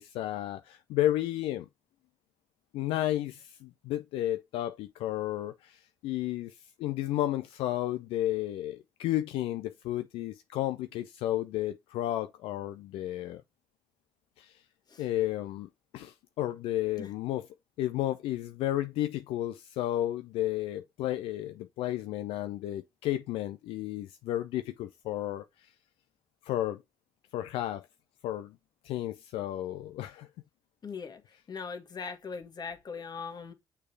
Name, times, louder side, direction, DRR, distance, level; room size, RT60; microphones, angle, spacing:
voice 1, 0.0-1.7 2.7-6.5 6.8-13.4 14.4-14.5 15.0-15.7 15.9-17.5 17.8-25.4 26.4-26.8 27.3-27.9 28.2-28.5 28.8-30.3, left 14 dB, 80° left, 0.4 m, -32 dB
voice 2, 30.8-31.2 31.5-33.5, left 5 dB, 45° left, 1.6 m, -40 dB
6.6 x 3.3 x 4.6 m
supercardioid pair, 55°, 9 cm